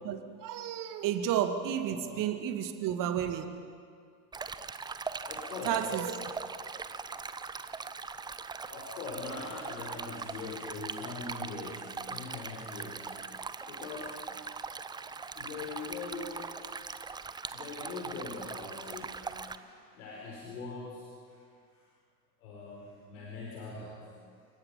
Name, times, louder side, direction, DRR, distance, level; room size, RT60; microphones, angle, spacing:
voice 1, 0.0-3.5 5.7-6.1, right 10 dB, 40° right, 7 dB, 2.1 m, -31 dB
Stream, 4.3-19.6, right 5 dB, 10° right, 0.6 m, -41 dB
voice 2, 5.3-5.9 8.6-13.2 13.5-14.2 15.4-16.5 17.5-21.4 21.7-21.8 22.4-24.1, left 4 dB, 60° left, -3 dB, 4.7 m, -42 dB
30.0 x 17.5 x 5.7 m, 2.1 s
figure-of-eight pair, 80°, 49 cm